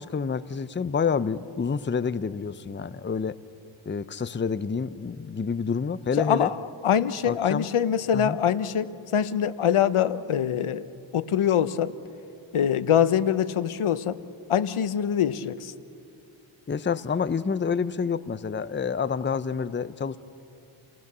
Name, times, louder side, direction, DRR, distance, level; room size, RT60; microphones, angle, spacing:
voice 1, 0.0-3.4 3.9-6.5 7.2-7.7 8.1-8.4 16.7-20.2, left 5 dB, 25° left, 15 dB, 0.6 m, -28 dB
voice 2, 6.2-10.9 11.1-11.9 12.5-14.2 14.5-15.7, left 9 dB, 80° left, 14 dB, 0.8 m, -24 dB
29.5 x 18.5 x 6.8 m, 2.6 s
wide cardioid pair, 75°, 49 cm